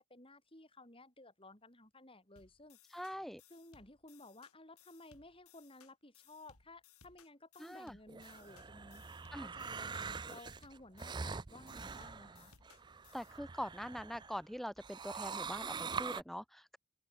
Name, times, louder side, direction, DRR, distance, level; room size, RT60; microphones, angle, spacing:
voice 1, 0.0-3.0 3.5-9.0 9.4-12.5, left 2 dB, 25° left, 4.5 m, -56 dB
sound 1, 2.4-13.4, left 7 dB, 85° left, 4.3 m, -65 dB
voice 2, 2.9-3.4 7.6-7.9 9.3-9.5 13.1-16.8, equal, ahead, 1.2 m, -43 dB
sound 2, 8.1-14.4 14.8-16.2, right 5 dB, 20° right, 0.4 m, -44 dB
open air
head